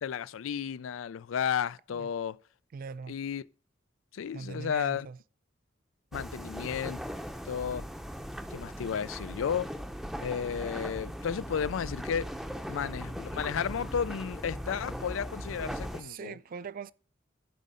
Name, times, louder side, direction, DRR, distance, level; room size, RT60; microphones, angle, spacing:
voice 1, 0.0-2.4 3.1-3.4 4.1-5.1 6.1-7.0 7.5-7.9 8.5-9.7 10.2-12.3 12.7-16.4, left 7 dB, 90° left, 0.4 m, -33 dB
voice 2, 2.7-3.2 4.3-5.2 15.9-16.9, right 5 dB, 45° right, 0.3 m, -41 dB
sound 1, 6.1-16.0, equal, ahead, 0.6 m, -39 dB
11.0 x 5.2 x 5.5 m
head